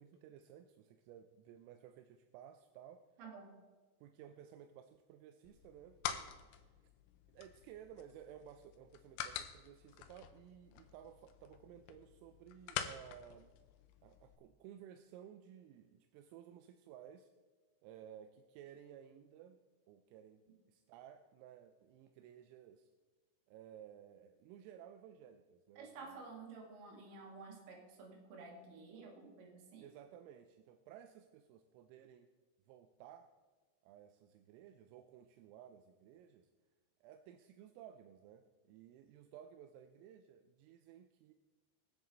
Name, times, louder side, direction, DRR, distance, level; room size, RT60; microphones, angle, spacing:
voice 1, 0.0-3.0 4.0-6.8 7.3-13.5 14.0-17.3 17.8-19.6 19.9-20.4 20.7-22.9 23.5-26.2 29.8-32.3 32.7-33.3 33.8-36.5 37.0-41.3, right 10 dB, 85° right, 8 dB, 3.2 m, -56 dB
voice 2, 3.2-3.5 25.8-29.9, right 4 dB, 65° right, 1 dB, 4.1 m, -52 dB
sound 1, 5.4-14.4, left 10 dB, 90° left, 3.3 m, -47 dB
22.5 x 7.7 x 3.9 m, 1.4 s
omnidirectional pair, 5.9 m